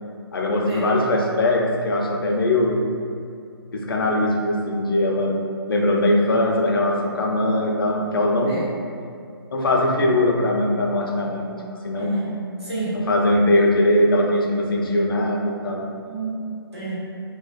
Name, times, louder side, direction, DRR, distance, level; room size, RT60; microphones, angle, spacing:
voice 1, 0.3-2.8 3.7-5.4 5.7-8.6 9.5-12.2 13.1-15.9, left 1 dB, 60° left, 0 dB, 0.4 m, -21 dB
voice 2, 11.9-13.0 16.0-16.4 16.7-16.9, right 2 dB, 90° right, -10 dB, 1.1 m, -30 dB
2.5 x 2.2 x 2.3 m, 2.4 s
figure-of-eight pair, 140°, 13 cm